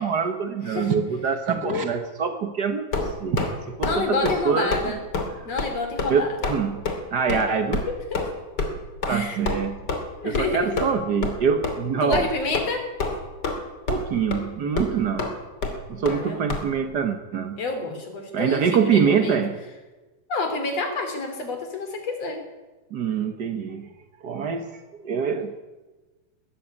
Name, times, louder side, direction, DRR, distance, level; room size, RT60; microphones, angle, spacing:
voice 1, 0.0-4.9 6.1-6.8 7.1-7.9 9.1-9.8 10.2-12.2 13.9-15.3 15.9-17.6 18.3-19.6 22.9-23.9 24.2-25.5, right 6 dB, 70° right, 7 dB, 0.9 m, -25 dB
sound 1, 2.9-3.5 3.8-4.0 4.2-4.4 4.7-4.9 5.1-5.3 5.6-5.7 6.0-6.1 6.4-6.6 6.9-7.0 7.3-7.4 7.7-7.8 8.1-8.3 8.6-8.7 9.0-9.1 9.5-9.6 9.9-10.0 10.3-10.5 10.8-10.9 11.2-11.4 11.6-11.7 12.1-12.3 12.5-12.7 13.0-13.6 13.9-14.1 14.3-14.4 14.8-14.9 15.2-15.3 15.6-15.7 16.1-16.2 16.5-16.6, left 3 dB, 30° left, 3.1 m, -26 dB
voice 2, 3.8-5.0 5.5-6.5 7.9-8.2 9.0-9.4 10.2-10.7 12.0-12.9 16.0-16.5 17.6-19.4 20.3-22.4, left 3 dB, 50° left, 6 dB, 4.1 m, -28 dB
19.5 x 14.5 x 9.8 m, 1.2 s
omnidirectional pair, 3.8 m